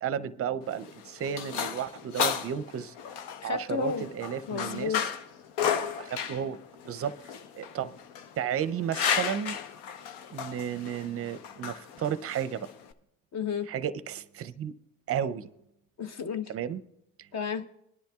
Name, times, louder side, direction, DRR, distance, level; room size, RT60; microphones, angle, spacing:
voice 1, 0.0-2.9 3.4-5.1 6.0-6.6 6.8-7.2 7.5-8.0 8.4-9.6 10.3-12.7 13.7-14.7 15.1-15.5 16.5-16.8, right 8 dB, 35° right, 0.6 m, -33 dB
sound 1, 0.6-12.9, left 8 dB, 75° left, 0.9 m, -34 dB
voice 2, 3.4-4.0 4.5-5.1 13.3-13.7 16.0-16.5 17.3-17.6, left 6 dB, 40° left, 0.9 m, -32 dB
21.5 x 10.5 x 2.3 m
supercardioid pair, 90°, 41 cm